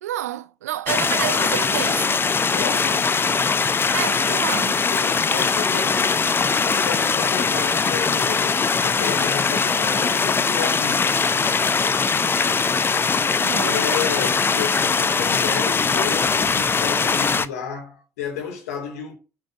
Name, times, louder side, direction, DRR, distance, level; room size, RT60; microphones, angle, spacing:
voice 1, 0.0-2.2 3.9-4.8 13.4-13.8, right 12 dB, 75° right, 0.7 m, -29 dB
sound 1, 0.9-17.5, left 5 dB, 25° left, 0.8 m, -21 dB
voice 2, 2.4-3.2 4.9-6.4 6.6-11.1 13.5-19.1, left 7 dB, 70° left, 2.9 m, -32 dB
8.0 x 6.6 x 8.0 m
figure-of-eight pair, 50°, 8 cm